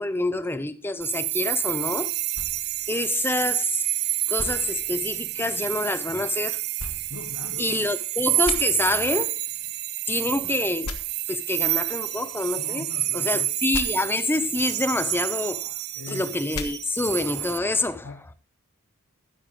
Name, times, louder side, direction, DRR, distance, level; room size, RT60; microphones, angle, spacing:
voice 1, 0.0-2.1 2.9-3.9 4.3-6.6 7.6-9.4 10.1-11.0 11.3-12.9 13.1-15.7 16.1-18.1, left 2 dB, 10° left, 0.6 m, -27 dB
sound 1, 1.0-17.6, right 14 dB, 50° right, 0.5 m, -29 dB
sound 2, 1.5-14.4, right 6 dB, 80° right, 3.2 m, -51 dB
sound 3, 2.3-3.8 4.4-5.6 6.8-7.9 8.4-8.6 10.8-11.0 13.7-13.8 16.5-16.7, left 3 dB, 85° left, 1.4 m, -37 dB
voice 2, 7.1-7.8 12.5-13.5 15.9-16.4 18.0-18.3, left 3 dB, 60° left, 1.1 m, -40 dB
12.5 x 9.9 x 3.7 m
head